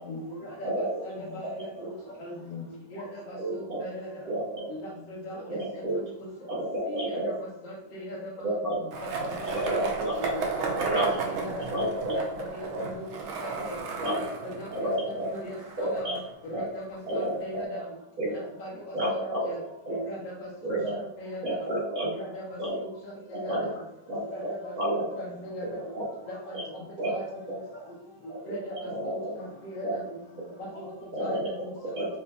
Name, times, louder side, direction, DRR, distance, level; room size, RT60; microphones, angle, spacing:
voice 1, 0.1-1.9 2.2-2.4 2.9-4.2 4.7-5.8 6.8-8.3 9.2-9.9 10.2-10.7 11.0-11.8 12.1-12.2 12.5-13.8 14.1-14.9 15.3-16.2 16.5-17.8 18.2-19.0 19.2-19.6 19.9-21.6 22.0-23.8 24.3-25.8 26.3-26.5 27.1-27.3 28.5-29.9 30.6-30.9 31.2-32.1, equal, 70° left, -5 dB, 1.2 m, -39 dB
voice 2, 0.6-1.0 1.8-1.9 3.3-3.8 4.3-4.7 5.5-6.0 6.5-7.3 8.4-8.8 9.4-10.3 10.8-11.1 11.7-12.2 12.7-12.9 13.6-13.7 14.0-14.1 14.7-15.3 15.8-16.2 16.5-16.6 17.1-17.6 18.2-18.4 18.9-19.4 19.9-20.0 20.6-21.0 21.4-22.1 22.6-22.8 23.3-23.7 24.1-24.2 24.8-25.2 25.6-26.0 26.5-26.6 27.0-27.1 27.5-27.6 28.3-28.4 28.8-29.4 29.8-30.0 31.1-31.5 31.9-32.1, right 1 dB, 50° right, -6 dB, 1.3 m, -30 dB
voice 3, 2.4-2.9 3.6-3.7 4.9-5.3 8.6-9.3 11.2-11.7 13.8-13.9 15.1-15.2 17.0-17.1 20.8-20.9 22.0-22.2 26.8-26.9 29.9-30.4 31.1-31.5, left 7 dB, 90° left, -3 dB, 1.5 m, -46 dB
Skateboard, 8.9-16.9, right 4 dB, 80° right, 1.5 m, -34 dB
5.1 x 2.2 x 2.2 m, 0.84 s
omnidirectional pair, 2.3 m